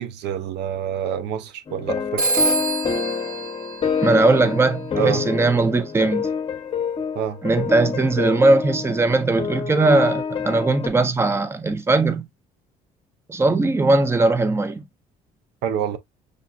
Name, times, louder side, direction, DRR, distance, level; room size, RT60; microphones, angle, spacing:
voice 1, 0.0-2.3 4.9-5.2 7.1-7.4 15.6-16.0, right 9 dB, 80° right, 0.6 m, -27 dB
sound 1, 1.7-10.9, left 6 dB, 30° left, 0.9 m, -27 dB
Telephone, 2.2-4.7, right 3 dB, 65° right, 1.5 m, -26 dB
voice 2, 4.0-6.3 7.4-12.3 13.3-14.9, right 2 dB, 15° right, 0.6 m, -19 dB
6.4 x 2.4 x 2.4 m
cardioid pair, 110°, 17 cm